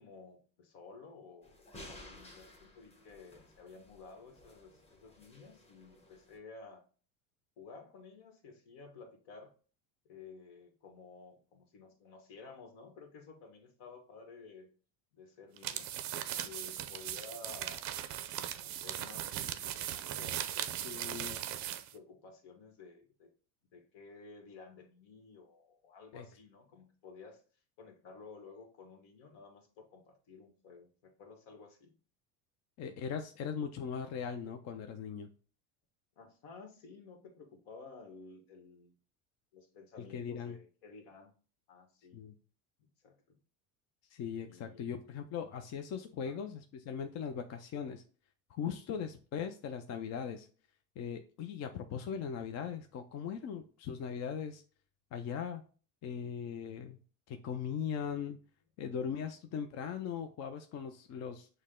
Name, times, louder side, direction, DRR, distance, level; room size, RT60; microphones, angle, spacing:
voice 1, 0.0-1.7 2.0-6.8 7.6-9.5 10.0-14.7 15.1-15.9 16.4-17.8 18.1-23.3 23.7-27.4 27.8-32.0 36.2-38.9 39.5-41.3 41.7-42.2 42.8-43.4 44.4-45.2 46.2-46.4, left 4 dB, 65° left, 5 dB, 1.4 m, -54 dB
sound 1, 1.4-6.4, left 1 dB, 15° left, 1.0 m, -55 dB
sound 2, 15.6-21.9, right 11 dB, 45° right, 0.5 m, -39 dB
voice 2, 20.8-21.4 26.1-26.2 32.8-35.3 40.1-40.6 42.1-42.3 44.1-48.0 48.5-50.5 51.0-54.6 55.1-55.6 56.0-57.0 57.3-58.4 58.8-61.5, left 7 dB, 40° left, 6 dB, 0.5 m, -39 dB
6.3 x 2.2 x 3.6 m, 0.39 s
supercardioid pair, 110°, 43 cm